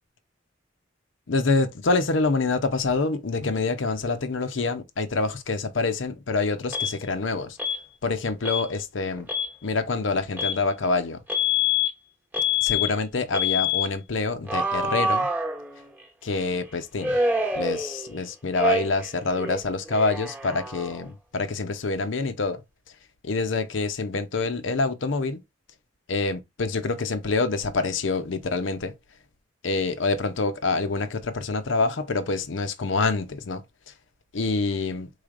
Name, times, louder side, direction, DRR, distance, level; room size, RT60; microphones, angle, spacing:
voice 1, 1.3-7.6 8.0-9.3 9.6-11.2 12.6-15.3 16.2-17.2 17.6-22.6 23.2-25.4 26.1-28.9 29.6-33.6 34.3-35.1, left 3 dB, 90° left, 0.7 m, -26 dB
Alarm, 6.7-6.9 7.6-7.8 8.4-8.7 9.2-9.5 10.4-10.6 11.3-11.9 12.3-12.9 13.3-13.9 14.5-16.0 17.0-18.2 18.5-19.1 19.4-21.1, left 3 dB, 10° right, 0.9 m, -26 dB
4.9 x 3.9 x 2.5 m
head